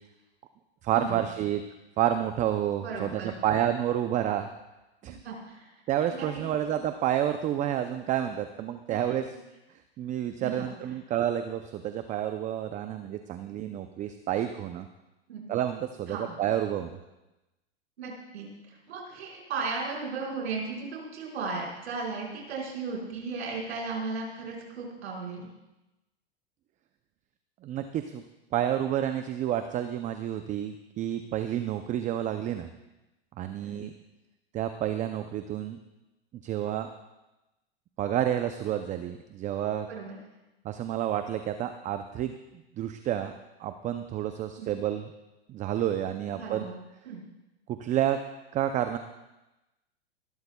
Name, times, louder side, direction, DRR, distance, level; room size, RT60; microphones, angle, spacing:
voice 1, 0.8-1.6 2.0-4.5 5.0-5.2 5.9-9.2 10.0-14.9 15.5-16.9 27.6-28.2 28.5-32.7 33.4-33.9 34.5-35.8 36.4-36.9 38.0-39.9 40.6-42.3 42.8-43.3 43.6-45.1 45.5-46.7 47.7-48.2 48.5-49.0, right 11 dB, 25° right, 8 dB, 0.5 m, -29 dB
voice 2, 2.8-3.4 5.2-5.7 6.1-6.4 8.9-9.0 9.3-9.4 10.4-10.7 13.4-13.5 15.3-15.5 16.1-16.4 18.0-25.5 33.6-33.8 39.9-40.2 44.6-44.7 46.3-46.7 47.0-47.2, right 4 dB, 75° right, -2 dB, 5.0 m, -36 dB
19.5 x 12.5 x 2.3 m, 1.0 s
hypercardioid pair, 115°, 33 cm